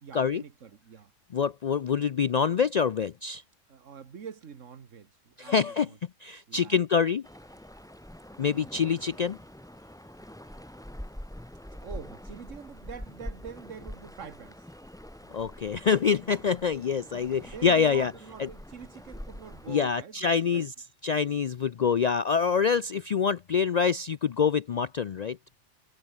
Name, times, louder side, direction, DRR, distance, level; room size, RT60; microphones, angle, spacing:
voice 1, 0.0-1.1 3.7-6.0 6.5-6.9 11.7-14.6 17.4-20.7, right 7 dB, 80° right, 1.7 m, -45 dB
voice 2, 1.3-3.4 5.4-5.9 6.2-7.2 8.4-9.4 15.3-18.1 18.4-18.5 19.7-20.7 21.0-25.4, left 6 dB, 60° left, 0.4 m, -26 dB
sound 1, 7.2-19.8, equal, 5° left, 1.1 m, -45 dB
omnidirectional pair, 1.3 m